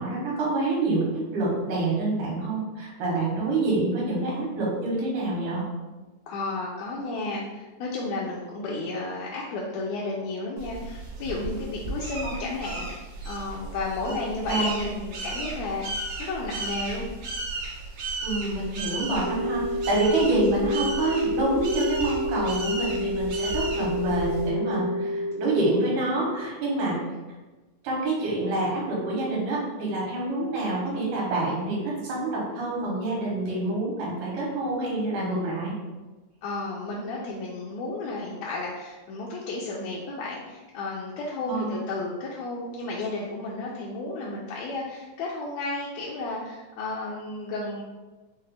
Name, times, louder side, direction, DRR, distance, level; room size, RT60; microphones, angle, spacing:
voice 1, 0.0-5.7 12.2-12.4 14.0-14.1 14.5-14.9 18.2-27.0 27.8-35.7 41.5-41.8, right 2 dB, 90° right, -4 dB, 2.5 m, -27 dB
voice 2, 6.3-12.9 13.2-15.8 16.2-17.1 36.4-47.8, left 2 dB, 80° left, -4 dB, 1.6 m, -33 dB
sound 1, 10.6-24.5, right 2 dB, 70° right, 1.6 m, -35 dB
sound 2, 19.2-25.3, left 1 dB, 40° left, 0.6 m, -29 dB
5.5 x 2.1 x 3.3 m, 1.2 s
omnidirectional pair, 3.4 m